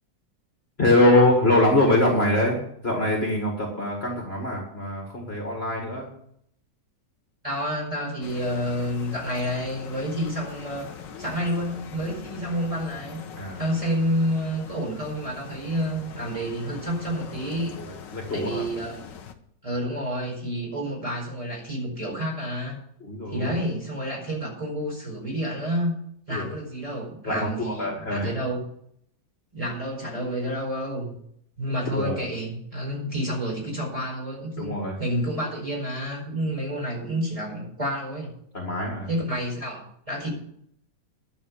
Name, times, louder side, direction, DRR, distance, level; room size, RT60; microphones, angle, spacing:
voice 1, 0.8-6.1 13.4-13.6 17.8-18.6 23.0-23.6 26.3-26.5 27.2-28.3 31.9-32.2 34.6-35.0 38.5-39.1, left 1 dB, 35° left, 0 dB, 2.3 m, -23 dB
voice 2, 7.4-10.9 11.2-13.2 13.6-17.8 18.3-19.0 19.6-22.8 23.3-25.9 26.3-28.6 29.5-31.2 31.6-38.3 39.1-40.3, equal, 20° right, -2 dB, 4.8 m, -29 dB
sound 1, 8.2-19.3, left 7 dB, 85° left, 1.7 m, -42 dB
11.5 x 6.7 x 8.4 m, 0.70 s
omnidirectional pair, 1.9 m